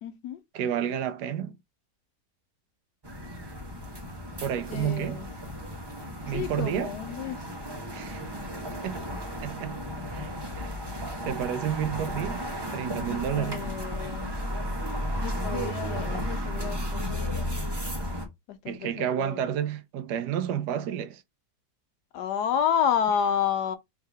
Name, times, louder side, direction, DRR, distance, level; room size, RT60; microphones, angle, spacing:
voice 1, 0.0-0.4 4.7-5.3 6.3-7.4 13.3-14.2 15.1-17.5 18.5-19.4 22.1-23.8, left 8 dB, 80° left, 1.3 m, -30 dB
voice 2, 0.5-1.6 4.4-5.2 6.3-6.9 7.9-8.2 8.8-9.0 9.4-9.8 10.1-12.4 12.7-13.6 18.7-21.2, right 9 dB, 75° right, 1.1 m, -31 dB
sound 1, 3.0-18.3, equal, 20° right, 0.7 m, -34 dB
3.7 x 2.8 x 4.7 m
omnidirectional pair, 1.8 m